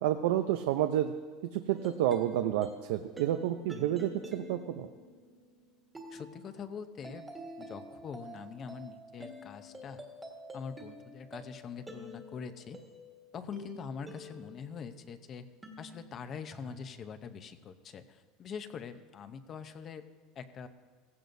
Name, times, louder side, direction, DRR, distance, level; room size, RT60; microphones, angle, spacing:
voice 1, 0.0-1.1 1.5-4.9, right 12 dB, 80° right, 8 dB, 0.5 m, -30 dB
sound 1, 1.7-15.1 15.6-16.8, equal, 10° right, 1.6 m, -48 dB
voice 2, 6.1-7.2 7.6-10.0 10.5-12.8 13.3-15.5 15.8-20.0 20.4-20.7, left 6 dB, 30° left, 9 dB, 0.7 m, -43 dB
16.5 x 15.5 x 2.7 m, 1.5 s
supercardioid pair, 150°, 0 cm